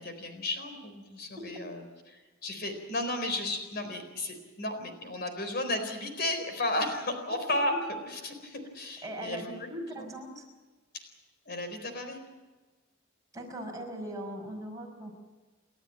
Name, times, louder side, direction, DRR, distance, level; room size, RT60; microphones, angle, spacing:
voice 1, 0.0-7.7 8.1-9.7 10.0-10.2 10.9-11.1 11.5-12.2, left 1 dB, 50° left, 7 dB, 4.3 m, -34 dB
voice 2, 9.0-10.4 13.3-15.1, equal, 15° right, 0 dB, 5.6 m, -39 dB
30.0 x 13.0 x 9.0 m, 1.3 s
head